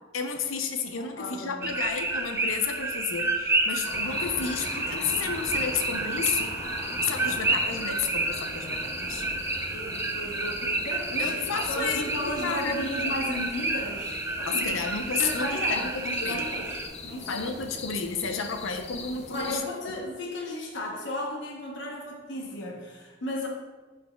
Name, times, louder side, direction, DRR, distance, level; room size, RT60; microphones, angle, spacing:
voice 1, 0.1-6.6 7.0-9.3 11.2-12.9 14.5-16.4 17.3-19.6, left 5 dB, 85° left, 6 dB, 0.6 m, -31 dB
voice 2, 1.0-1.7 9.7-14.7 15.2-17.5 19.3-23.5, left 1 dB, 60° left, -1 dB, 1.0 m, -34 dB
sound 1, 1.6-16.9, right 2 dB, 10° right, 0.3 m, -30 dB
sound 2, 3.8-19.6, left 3 dB, 35° left, 0.6 m, -40 dB
11.0 x 4.0 x 2.3 m, 1.3 s
head